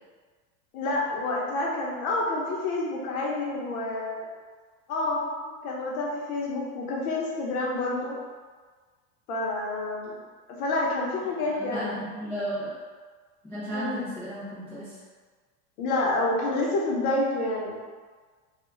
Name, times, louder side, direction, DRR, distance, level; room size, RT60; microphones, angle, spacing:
voice 1, 0.7-4.3 4.9-8.1 9.3-10.2 10.6-12.0 13.7-14.1 15.8-17.8, left 2 dB, 60° left, -3 dB, 0.9 m, -28 dB
voice 2, 11.5-12.7 13.4-15.0, equal, 5° left, -15 dB, 0.4 m, -34 dB
2.3 x 2.3 x 3.1 m, 1.5 s
supercardioid pair, 125°, 49 cm